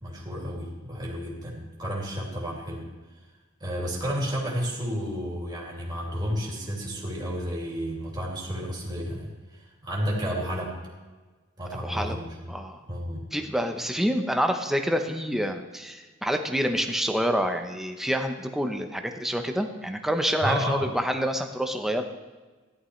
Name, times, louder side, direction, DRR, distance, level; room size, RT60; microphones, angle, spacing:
voice 1, 0.0-2.9 3.6-10.8 11.6-12.5 12.9-13.2 20.4-20.9, equal, 20° right, -4 dB, 2.5 m, -31 dB
voice 2, 11.8-12.2 12.5-12.8 13.3-22.0, equal, ahead, 5 dB, 0.8 m, -27 dB
14.5 x 11.0 x 3.2 m, 1.3 s
head